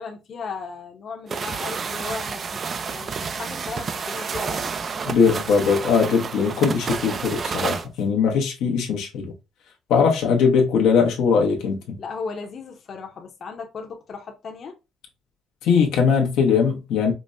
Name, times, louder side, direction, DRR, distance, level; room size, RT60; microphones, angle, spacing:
voice 1, 0.0-4.7 12.0-14.7, left 4 dB, 45° left, 0.8 m, -36 dB
sound 1, 1.3-7.9, right 5 dB, 40° right, 0.3 m, -30 dB
voice 2, 5.1-9.3 9.9-12.0 15.6-17.1, left 6 dB, 85° left, 1.0 m, -20 dB
5.1 x 2.1 x 2.5 m
cardioid pair, 120°, 0 cm